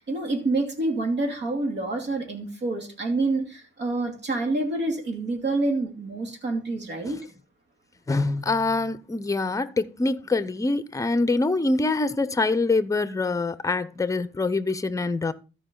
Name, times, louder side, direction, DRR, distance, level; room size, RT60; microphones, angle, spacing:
voice 1, 0.0-7.2, right 2 dB, 60° right, 2.6 m, -27 dB
voice 2, 8.1-15.3, left 3 dB, 15° left, 0.7 m, -25 dB
13.5 x 5.1 x 3.8 m
cardioid pair, 90°, 20 cm